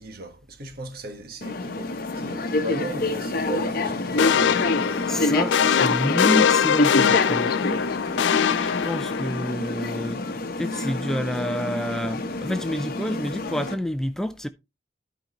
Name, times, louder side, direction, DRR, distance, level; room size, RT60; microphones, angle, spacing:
voice 1, 0.0-5.1, right 1 dB, 55° right, 1.4 m, -37 dB
sound 1, 1.4-13.7, left 2 dB, 55° left, 0.9 m, -27 dB
sound 2, 4.2-9.5, left 8 dB, 80° left, 0.4 m, -22 dB
voice 2, 5.0-7.8 8.6-14.5, equal, 5° left, 0.4 m, -29 dB
13.5 x 5.1 x 3.0 m
head